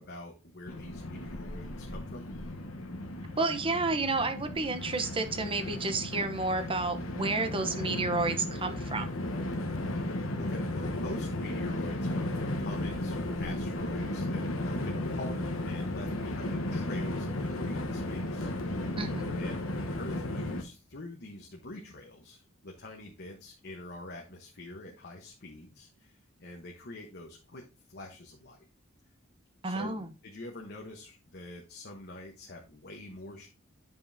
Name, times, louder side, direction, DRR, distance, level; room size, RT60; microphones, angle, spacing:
voice 1, 0.0-2.3 10.4-18.9 19.3-27.6 27.9-28.6 29.6-33.5, left 2 dB, 50° left, 1.0 m, -45 dB
Train, 0.7-20.6, left 1 dB, 85° left, 1.1 m, -34 dB
voice 2, 3.4-9.1 19.0-19.4 29.6-30.1, right 3 dB, 25° right, 0.8 m, -31 dB
9.4 x 5.3 x 2.7 m
head